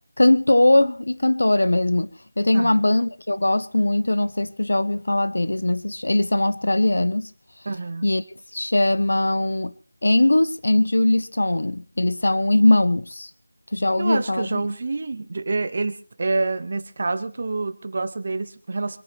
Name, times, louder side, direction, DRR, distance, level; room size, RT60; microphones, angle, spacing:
voice 1, 0.2-7.3 8.0-8.2 8.5-9.7 10.0-13.3 13.7-14.6, left 1 dB, 60° left, 0.8 m, -20 dB
voice 2, 7.6-8.1 14.0-19.0, right 3 dB, 25° right, 0.9 m, -27 dB
26.5 x 8.9 x 4.4 m
figure-of-eight pair, 180°, 0 cm